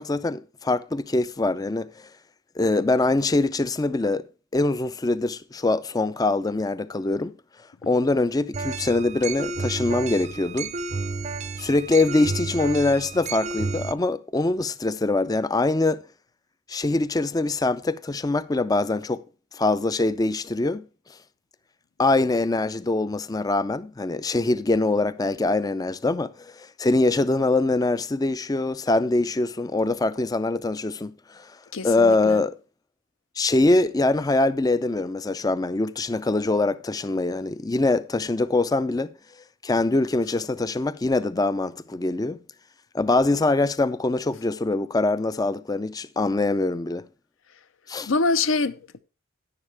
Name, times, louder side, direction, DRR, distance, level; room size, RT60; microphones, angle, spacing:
voice 1, 0.0-2.1 2.6-4.3 4.5-7.3 7.9-10.7 11.6-16.0 16.7-19.2 19.5-20.8 22.0-31.5 31.8-32.6 33.4-39.1 39.6-42.4 42.9-47.1 47.9-48.1, left 2 dB, 20° left, 0.4 m, -23 dB
sound 1, 8.5-13.9, right 4 dB, 30° right, 0.5 m, -31 dB
voice 2, 31.7-32.4 48.0-49.0, left 3 dB, 65° left, 0.6 m, -25 dB
11.0 x 9.7 x 3.3 m
head